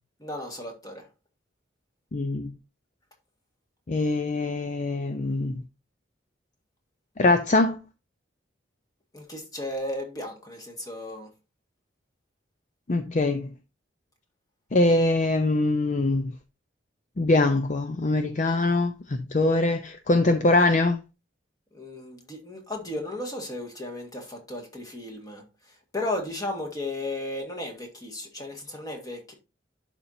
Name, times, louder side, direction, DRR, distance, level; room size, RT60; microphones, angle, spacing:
voice 1, 0.2-1.1 9.1-11.3 21.7-29.3, left 1 dB, 20° left, 1.7 m, -35 dB
voice 2, 2.1-2.5 3.9-5.6 7.2-7.8 12.9-13.5 14.7-16.3 17.2-21.0, left 2 dB, 40° left, 0.5 m, -23 dB
11.0 x 4.4 x 2.6 m
head